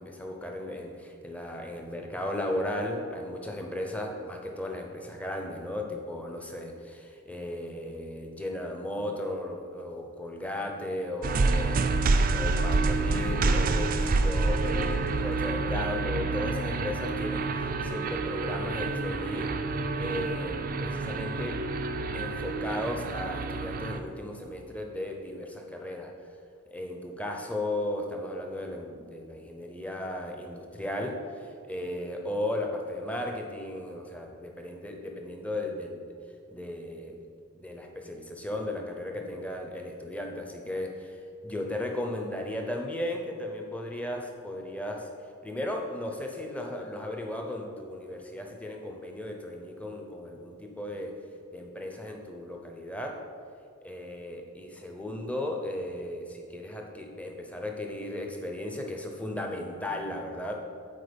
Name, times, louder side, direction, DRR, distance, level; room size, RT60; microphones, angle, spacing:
voice 1, 0.0-19.5 20.0-21.6 22.1-26.1 26.7-36.0 36.5-37.2 37.5-51.2 51.5-53.2 53.8-60.5, left 1 dB, 5° left, 2 dB, 0.6 m, -36 dB
sound 1, 11.2-24.0, right 3 dB, 40° right, 0.4 m, -28 dB
8.2 x 4.3 x 5.2 m, 2.4 s
head